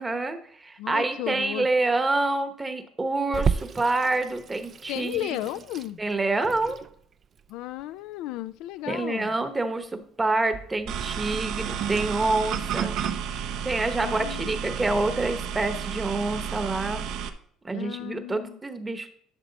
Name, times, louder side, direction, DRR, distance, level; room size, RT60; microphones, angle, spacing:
voice 1, 0.0-5.4 6.0-6.8 8.9-13.0 13.6-17.0 17.6-19.1, right 2 dB, 15° right, 1.0 m, -27 dB
voice 2, 0.8-1.7 4.9-6.0 7.5-9.3 14.0-14.6 17.7-18.6, left 14 dB, 70° left, 0.3 m, -34 dB
Water tap faucet / Sink (filling or washing), 3.3-12.3, right 6 dB, 35° right, 0.4 m, -35 dB
sound 1, 10.9-17.3, right 8 dB, 60° right, 0.8 m, -31 dB
12.0 x 6.1 x 4.1 m
cardioid pair, 130°, 0 cm